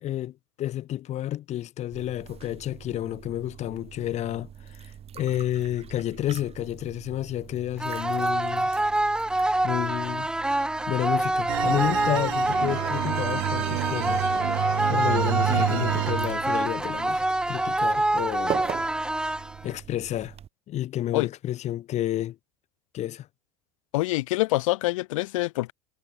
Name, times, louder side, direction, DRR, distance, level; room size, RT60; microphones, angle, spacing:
voice 1, 0.0-8.7 9.1-9.2 9.6-10.3 10.9-14.3 14.9-18.6 18.9-20.3 20.7-22.4 22.9-23.3, left 13 dB, 40° left, 0.9 m, -31 dB
sound 1, 1.9-20.5, right 9 dB, 35° right, 2.4 m, -42 dB
sound 2, 7.8-19.8, right 1 dB, 5° right, 0.5 m, -26 dB
sound 3, 11.5-16.7, right 36 dB, 65° right, 2.8 m, -29 dB
voice 2, 15.5-15.9 21.1-21.3 23.9-25.7, left 19 dB, 70° left, 0.6 m, -26 dB
hypercardioid pair, 80°, 18 cm